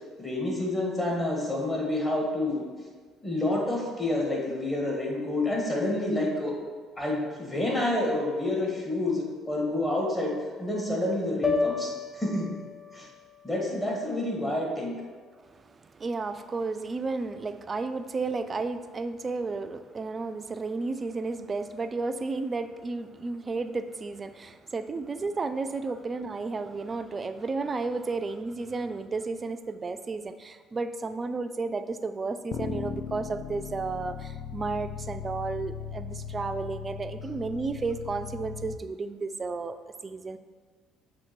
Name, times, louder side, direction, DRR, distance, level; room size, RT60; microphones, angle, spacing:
voice 1, 0.2-2.6 3.2-6.5 7.0-10.3 10.6-12.5 12.9-13.1 13.4-15.0, left 1 dB, 20° left, -2 dB, 1.7 m, -28 dB
sound 1, 11.4-15.7, left 4 dB, ahead, 0.7 m, -34 dB
voice 2, 15.5-40.4, right 3 dB, 30° right, 10 dB, 0.4 m, -33 dB
sound 2, 32.5-38.8, left 7 dB, 65° left, 0.3 m, -38 dB
7.1 x 3.0 x 4.4 m, 1.5 s
supercardioid pair, 70°, 0 cm